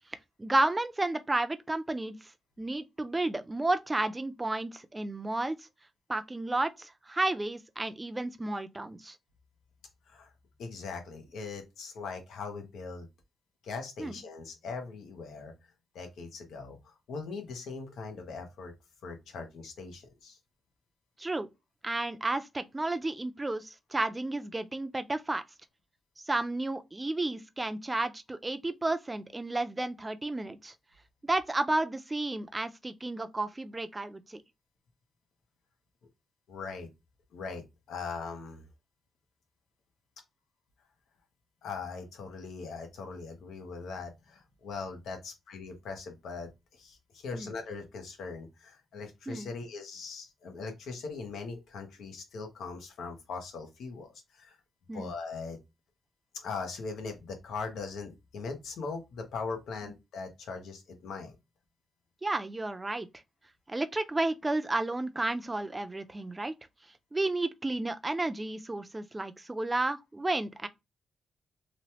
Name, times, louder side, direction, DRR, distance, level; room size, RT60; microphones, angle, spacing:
voice 1, 0.4-2.3 2.6-5.7 6.1-9.2 14.0-14.2 21.2-21.5 21.8-25.4 26.2-30.7 31.2-34.4 47.3-47.5 49.3-49.5 54.9-55.1 59.8-59.9 62.2-63.1 63.7-66.5 67.1-70.7, right 2 dB, 20° right, 0.5 m, -32 dB
voice 2, 10.6-13.1 13.6-15.5 15.9-18.7 19.0-20.4 36.5-36.9 37.3-38.6 41.6-54.6 54.9-55.6 56.3-61.4, left 4 dB, 80° left, 0.9 m, -40 dB
3.1 x 2.1 x 2.8 m
cardioid pair, 75°, 0 cm